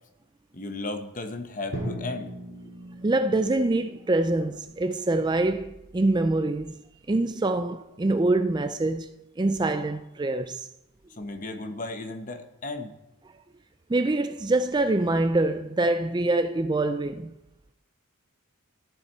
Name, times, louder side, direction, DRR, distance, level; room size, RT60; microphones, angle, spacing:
voice 1, 0.5-2.3 11.2-13.0, left 2 dB, 35° left, 0.9 m, -35 dB
Drum, 1.7-5.7, equal, 60° left, 2.2 m, -39 dB
voice 2, 3.0-6.8 7.1-9.1 9.4-10.7 13.9-17.3, right 2 dB, 20° right, 0.4 m, -25 dB
13.5 x 11.0 x 4.3 m
head